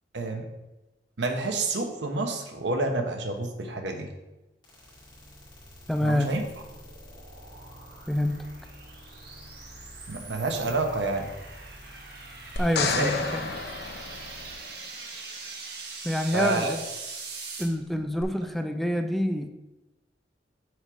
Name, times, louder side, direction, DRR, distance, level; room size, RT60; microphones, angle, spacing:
voice 1, 0.1-0.5 1.2-4.1 6.0-6.4 10.1-11.3 12.8-13.5 16.3-16.8 17.9-18.0, right 2 dB, 80° right, 4 dB, 1.0 m, -29 dB
sound 1, 4.6-14.5, equal, 25° left, 2.2 m, -49 dB
voice 2, 5.9-6.3 8.1-8.5 12.6-13.4 16.0-16.8 17.6-19.5, equal, ahead, 6 dB, 0.4 m, -27 dB
sound 2, 6.4-17.6, right 4 dB, 65° right, 1.3 m, -43 dB
sound 3, 12.6-14.9 18.2-18.3, left 4 dB, 65° left, 0.7 m, -31 dB
6.4 x 4.8 x 4.8 m, 1.0 s
head